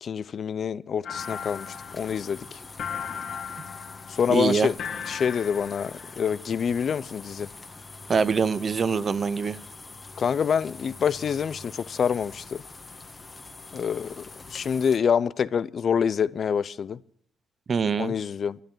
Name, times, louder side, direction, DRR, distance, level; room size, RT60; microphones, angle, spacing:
voice 1, 0.0-2.6 4.1-4.8 5.1-7.5 10.2-12.6 13.7-14.2 14.5-17.0 18.0-18.6, left 7 dB, 50° left, 0.5 m, -26 dB
sound 1, 1.0-6.3, left 7 dB, 70° left, 2.2 m, -37 dB
sound 2, 1.2-15.0, left 3 dB, 25° left, 1.3 m, -44 dB
voice 2, 4.3-4.7 8.1-9.6 17.7-18.1, right 5 dB, 40° right, 0.6 m, -24 dB
12.5 x 10.5 x 7.6 m
cardioid pair, 90°, 0 cm